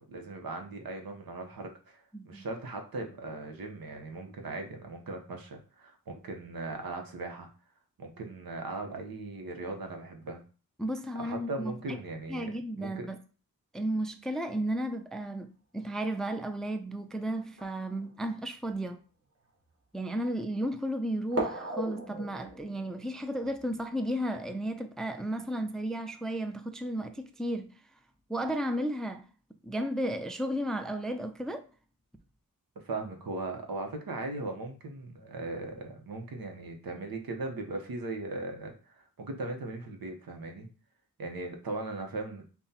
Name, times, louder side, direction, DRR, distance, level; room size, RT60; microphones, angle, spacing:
voice 1, 0.0-7.5 8.0-10.4 11.1-13.1 32.8-40.7 41.2-42.4, right 2 dB, 80° right, 0.9 m, -38 dB
voice 2, 2.1-2.5 10.8-12.0 12.3-13.2 13.7-19.0 19.9-27.7 28.3-29.3 29.6-31.7, right 1 dB, ahead, 0.3 m, -33 dB
sound 1, 16.1-16.2 17.4-18.7 19.4-19.5 21.3-24.5, right 1 dB, 40° right, 1.3 m, -39 dB
5.5 x 2.2 x 2.8 m
cardioid pair, 65°, 35 cm